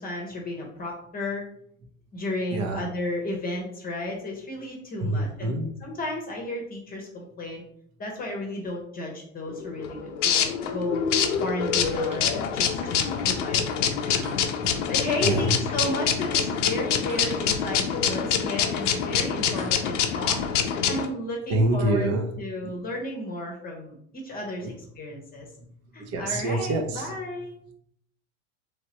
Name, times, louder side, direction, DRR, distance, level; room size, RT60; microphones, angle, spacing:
voice 1, 0.0-1.4 2.1-5.5 5.8-7.6 8.0-11.1 11.4-22.1 22.4-25.5 25.9-27.5, left 1 dB, 25° left, 0 dB, 0.9 m, -33 dB
voice 2, 2.5-2.9 5.0-5.9 13.0-13.6 14.6-14.7 15.2-15.6 19.6-19.7 21.5-22.7 24.6-24.7 25.1-27.2, right 2 dB, 45° right, 4 dB, 0.9 m, -28 dB
sound 1, 9.5-21.1, left 7 dB, 75° left, 0.6 m, -26 dB
sound 2, 11.8-12.5 12.8-15.4 15.7-17.7 18.1-18.2 18.6-19.0 19.4-20.5, right 1 dB, 85° right, 1.0 m, -44 dB
3.2 x 2.9 x 3.0 m, 0.68 s
hypercardioid pair, 95°, 37 cm